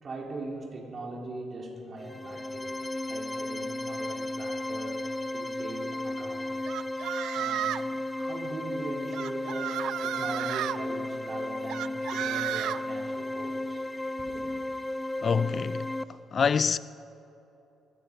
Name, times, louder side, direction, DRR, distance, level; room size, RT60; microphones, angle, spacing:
voice 1, 0.0-5.0 5.3-6.5 7.3-7.8 8.2-9.8 10.0-13.8 14.2-14.5, right 2 dB, 45° right, 4.0 m, -40 dB
sound 1, 2.0-16.0, left 1 dB, 15° left, 0.7 m, -34 dB
sound 2, 6.7-7.9 9.1-10.8 11.7-12.8, right 12 dB, 85° right, 0.5 m, -32 dB
voice 2, 15.2-15.9 16.3-16.8, left 6 dB, 45° left, 0.5 m, -25 dB
24.5 x 22.0 x 5.4 m
cardioid pair, 90°, 0 cm